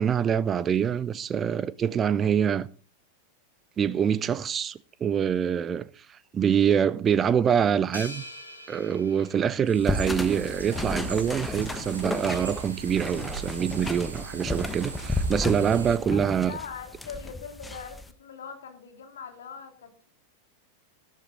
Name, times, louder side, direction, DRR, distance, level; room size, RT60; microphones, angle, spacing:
voice 1, 0.0-2.7 3.8-8.2 8.7-16.5, right 8 dB, 25° right, 0.6 m, -25 dB
sound 1, 7.9-10.4, left 1 dB, 85° left, 2.9 m, -44 dB
sound 2, 9.7-16.0, right 3 dB, 75° right, 2.4 m, -40 dB
sound 3, 9.9-18.1, left 2 dB, 10° left, 1.2 m, -33 dB
voice 2, 16.1-20.1, left 6 dB, 65° left, 2.9 m, -42 dB
13.0 x 13.0 x 3.9 m
figure-of-eight pair, 90°, 0 cm